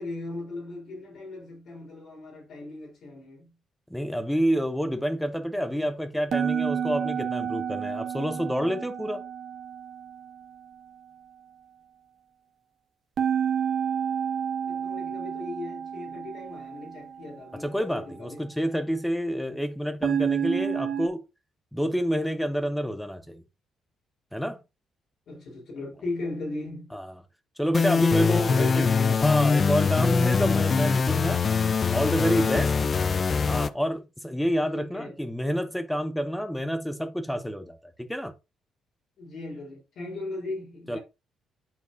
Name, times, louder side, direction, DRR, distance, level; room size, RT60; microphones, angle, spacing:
voice 1, 0.0-3.5 5.7-5.9 14.7-18.5 25.3-26.9 27.9-29.2 34.8-35.2 39.2-41.0, left 2 dB, 70° left, 3.7 m, -37 dB
voice 2, 3.9-9.2 17.5-21.2 21.7-23.4 24.3-24.6 26.9-27.2 27.6-28.8 29.1-31.4 31.9-32.7 33.5-38.3 40.9-41.0, equal, 5° left, 0.8 m, -28 dB
sound 1, 6.3-10.5 13.2-17.3 20.0-21.1, right 8 dB, 65° right, 1.4 m, -30 dB
sound 2, 27.7-33.7, left 5 dB, 40° left, 0.4 m, -23 dB
8.4 x 4.5 x 2.6 m
cardioid pair, 90°, 0 cm